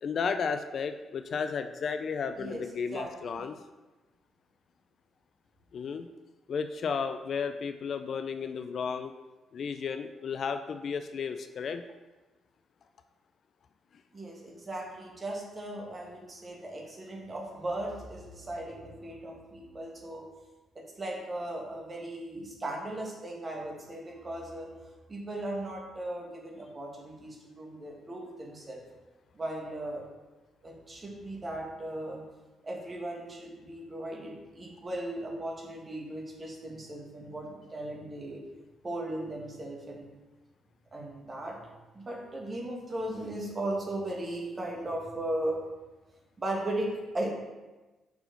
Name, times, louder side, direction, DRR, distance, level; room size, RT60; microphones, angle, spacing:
voice 1, 0.0-3.6 5.7-6.1 6.5-9.1 9.5-11.8, left 6 dB, 55° left, 9 dB, 0.3 m, -33 dB
voice 2, 2.9-3.5 14.1-20.2 20.7-24.7 25.1-28.8 29.3-30.0 30.6-32.2 32.6-38.4 38.8-40.1 40.9-41.6 41.9-45.6 46.4-46.9 47.1-47.3, right 1 dB, 30° right, -1 dB, 1.6 m, -37 dB
5.7 x 4.6 x 3.9 m, 1.2 s
cardioid pair, 90°, 0 cm